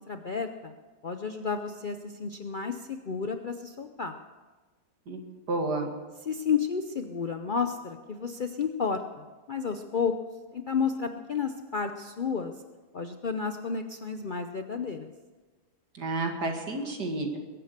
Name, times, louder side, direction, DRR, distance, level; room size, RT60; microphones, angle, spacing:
voice 1, 0.1-0.7 1.0-4.1 6.2-10.1 10.5-12.5 12.9-15.1, left 6 dB, 55° left, 6 dB, 0.5 m, -31 dB
voice 2, 5.5-5.9 16.0-17.4, right 2 dB, 85° right, 2 dB, 2.6 m, -30 dB
21.5 x 8.7 x 6.6 m, 1.3 s
omnidirectional pair, 1.7 m